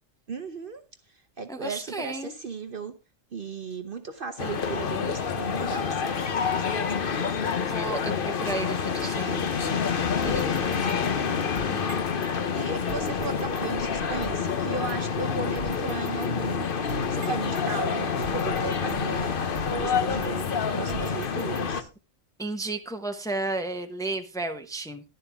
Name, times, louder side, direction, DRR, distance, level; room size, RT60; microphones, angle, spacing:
voice 1, 0.3-0.8 1.4-2.9 3.3-6.0 6.5-7.4 12.5-16.7 17.1-19.4 19.7-21.9, right 4 dB, 50° right, 0.9 m, -36 dB
voice 2, 1.5-2.3 7.2-7.3 7.6-9.7 10.1-11.8 21.0-21.2 22.4-25.0, right 2 dB, 5° left, 0.9 m, -34 dB
sound 1, 4.4-21.8, left 6 dB, 50° left, 1.0 m, -28 dB
sound 2, 10.2-12.3 12.9-14.5 14.9-15.0 15.5-17.7 18.2-20.5 20.9-22.0, right 7 dB, 80° right, 1.2 m, -44 dB
11.5 x 11.0 x 3.5 m
omnidirectional pair, 1.3 m